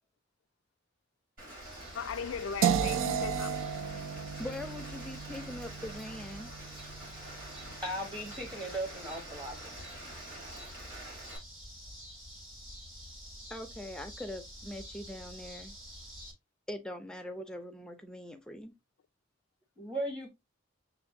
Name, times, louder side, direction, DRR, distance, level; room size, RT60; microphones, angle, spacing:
Rain, 1.4-11.4, right 1 dB, 45° right, 2.8 m, -47 dB
sound 1, 1.6-16.3, equal, 90° right, 1.9 m, -49 dB
voice 1, 1.9-3.6, left 7 dB, 85° left, 0.4 m, -38 dB
sound 2, 2.6-8.5, right 8 dB, 75° right, 0.4 m, -34 dB
voice 2, 4.4-6.5 13.5-15.7 16.7-18.7, left 1 dB, 5° left, 0.5 m, -42 dB
voice 3, 7.8-9.6 19.8-20.3, right 1 dB, 25° right, 1.0 m, -37 dB
6.8 x 2.5 x 2.6 m
head